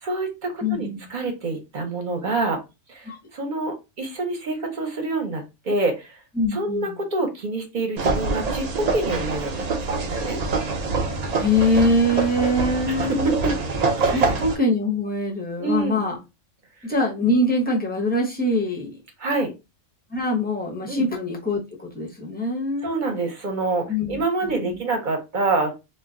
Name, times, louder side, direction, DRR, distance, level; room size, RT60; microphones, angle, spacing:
voice 1, 0.0-2.6 2.9-6.2 6.5-10.4 12.9-13.5 14.0-14.4 15.6-16.0 19.2-19.5 20.9-21.1 22.8-25.7, right 2 dB, 45° right, 0.7 m, -27 dB
voice 2, 0.6-1.1 3.0-3.2 6.4-7.0 11.3-13.3 14.1-16.2 16.8-19.0 20.1-23.0 23.9-24.8, left 1 dB, 10° left, 0.5 m, -23 dB
sound 1, 8.0-14.6, right 3 dB, 70° right, 0.3 m, -25 dB
2.3 x 2.1 x 3.6 m
omnidirectional pair, 1.3 m